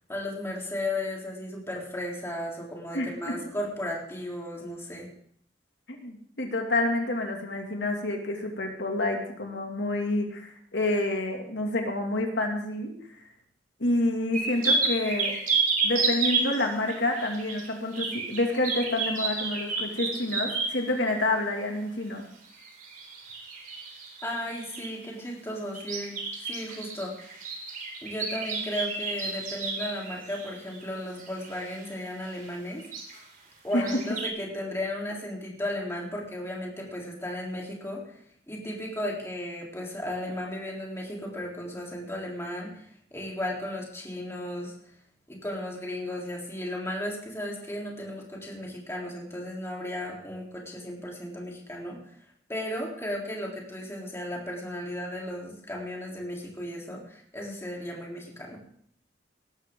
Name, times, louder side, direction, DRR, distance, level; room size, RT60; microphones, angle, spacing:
voice 1, 0.1-5.1 24.2-27.3 28.0-32.9 33.6-38.2 38.5-42.8 43.1-44.7 45.3-52.2 52.5-58.6, left 1 dB, 15° left, -2 dB, 3.7 m, -35 dB
voice 2, 5.9-12.9 13.8-15.3 15.8-22.2 33.7-33.9, left 2 dB, 85° left, 2 dB, 2.5 m, -28 dB
sound 1, 14.3-20.9 22.5-25.1 25.7-31.9 32.2-32.5 32.8-33.2 33.7-34.3, right 4 dB, 50° right, 3.7 m, -31 dB
18.5 x 13.5 x 3.9 m, 0.64 s
head